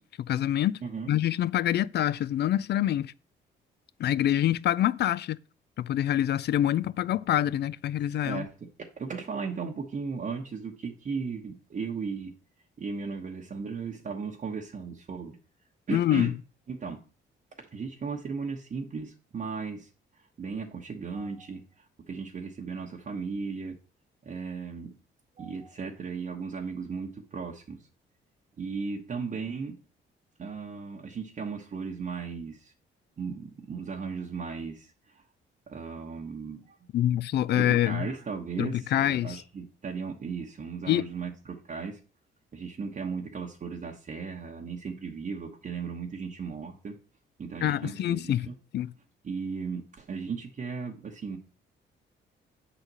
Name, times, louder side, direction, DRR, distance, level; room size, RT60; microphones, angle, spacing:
voice 1, 0.0-0.8 1.1-3.1 4.0-5.4 5.8-8.5 15.9-16.3 36.9-38.1 38.6-39.4 40.9-41.1 47.6-48.5 48.7-48.9, left 12 dB, 60° left, 0.4 m, -26 dB
voice 2, 0.8-1.1 8.2-12.3 12.8-15.4 15.9-16.3 16.7-17.0 17.7-19.9 20.2-23.8 24.2-24.9 25.4-27.8 28.6-29.8 30.4-32.7 33.2-35.2 35.7-36.8 37.5-42.0 42.5-47.0 47.4-48.5 49.2-51.4, right 5 dB, 40° right, 1.1 m, -36 dB
8.0 x 4.0 x 6.1 m
cardioid pair, 90°, 20 cm